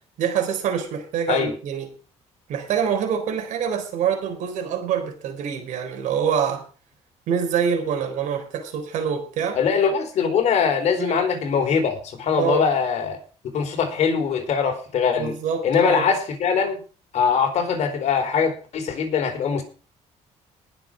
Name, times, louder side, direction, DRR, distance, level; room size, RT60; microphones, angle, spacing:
voice 1, 0.2-1.9 2.5-6.6 7.3-9.6 11.0-11.2 12.4-12.6 15.2-16.1, right 7 dB, 80° right, 6 dB, 4.1 m, -25 dB
voice 2, 9.5-13.2 13.5-15.3 15.6-16.8 17.1-19.6, left 6 dB, 65° left, 5 dB, 4.5 m, -22 dB
20.0 x 7.2 x 5.2 m, 0.37 s
cardioid pair, 125°, 13 cm